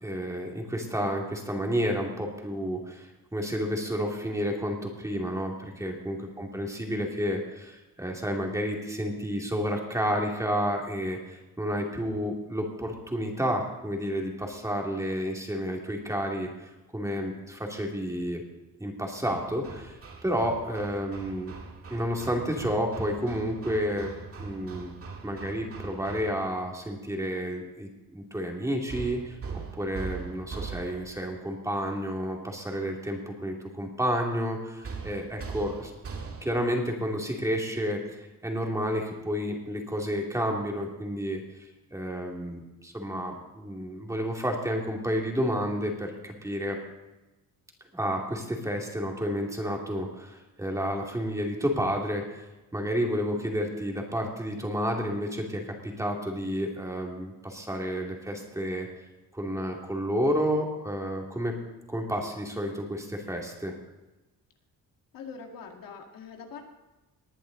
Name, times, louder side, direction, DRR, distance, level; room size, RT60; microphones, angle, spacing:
voice 1, 0.0-18.4 18.8-21.5 21.9-24.1 24.4-24.9 25.2-29.4 29.8-35.9 36.4-41.4 41.9-46.8 47.9-52.4 52.7-58.9 59.3-61.6 61.9-63.7, equal, 10° right, 1 dB, 2.5 m, -30 dB
voice 2, 6.3-6.6 65.1-66.6, left 5 dB, 70° left, 2 dB, 2.3 m, -44 dB
Hammer, 19.2-26.7 28.9-31.3 34.8-36.8, right 5 dB, 40° right, 2.1 m, -41 dB
19.5 x 10.5 x 4.0 m, 1.1 s
cardioid pair, 125°, 35 cm